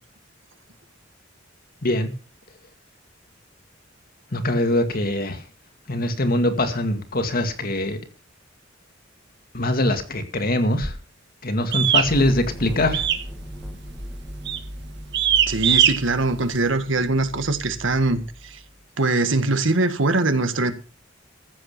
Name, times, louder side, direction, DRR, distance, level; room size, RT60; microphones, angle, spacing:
voice 1, 4.3-5.4 5.9-8.0 9.5-11.0 11.4-13.1, left 1 dB, 50° left, 2.1 m, -22 dB
sound 1, 11.7-12.1 12.9-13.3 13.6-13.9 14.5-14.7 15.1-15.9, right 9 dB, 60° right, 1.7 m, -19 dB
sound 2, 12.0-18.8, equal, ahead, 1.9 m, -37 dB
voice 2, 15.5-18.6 19.0-20.7, right 2 dB, 75° right, 1.7 m, -22 dB
14.5 x 7.8 x 6.7 m
head